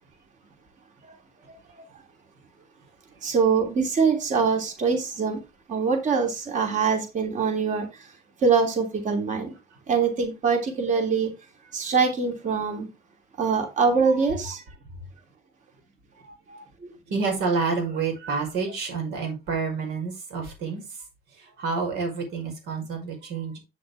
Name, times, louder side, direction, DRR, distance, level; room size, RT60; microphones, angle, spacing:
voice 1, 3.2-5.4 5.7-7.9 8.4-9.5 9.9-11.3 11.7-12.9 13.4-14.6 16.8-16.9, right 5 dB, 45° right, 2.9 m, -23 dB
voice 2, 16.2-16.6 17.1-20.8 21.4-23.6, right 4 dB, 85° right, 5.5 m, -29 dB
8.7 x 6.9 x 3.4 m
cardioid pair, 110°, 17 cm